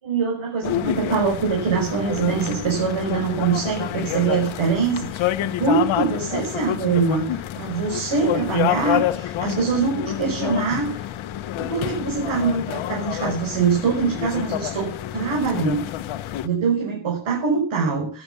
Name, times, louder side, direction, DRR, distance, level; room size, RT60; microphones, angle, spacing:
voice 1, 0.0-11.1 11.6-15.8 16.4-18.2, right 5 dB, 80° right, -1 dB, 6.3 m, -23 dB
sound 1, 0.6-16.5, left 12 dB, 90° left, 1.1 m, -28 dB
13.0 x 13.0 x 7.1 m, 0.41 s
cardioid pair, 80°, 46 cm